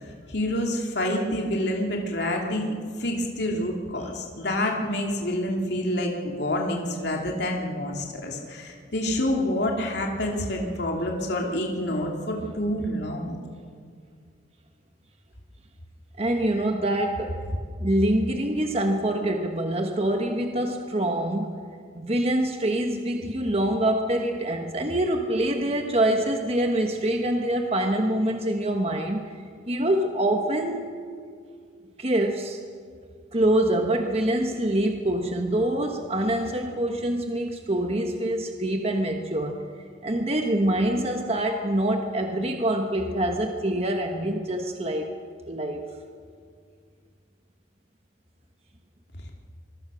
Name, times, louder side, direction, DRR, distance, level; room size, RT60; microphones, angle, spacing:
voice 1, 0.3-13.4, left 1 dB, 60° left, 0 dB, 2.8 m, -27 dB
voice 2, 16.2-17.4 17.8-21.6 21.9-29.3 29.7-30.9 32.0-32.6 33.3-39.6 40.0-45.1 45.5-45.8, right 1 dB, 30° right, 3 dB, 1.3 m, -25 dB
26.0 x 22.0 x 6.3 m, 2.1 s
head